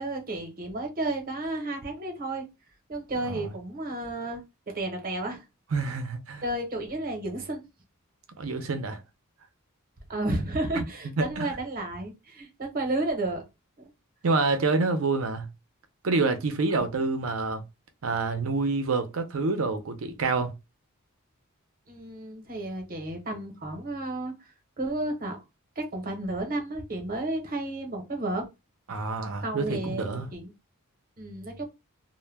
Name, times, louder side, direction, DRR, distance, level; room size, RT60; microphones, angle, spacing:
voice 1, 0.0-2.5 2.9-4.4 4.7-5.4 6.4-7.6 10.1-13.4 13.8-13.9 16.8-16.9 21.9-24.3 24.8-25.4 25.8-28.4 29.4-30.5 31.2-31.6, right 2 dB, 45° right, 0.8 m, -32 dB
voice 2, 5.7-6.4 8.4-9.0 10.8-10.9 11.2-11.5 14.2-15.5 16.0-17.6 18.0-20.5 28.9-30.3, right 3 dB, 70° right, 0.5 m, -27 dB
2.1 x 2.1 x 3.2 m
head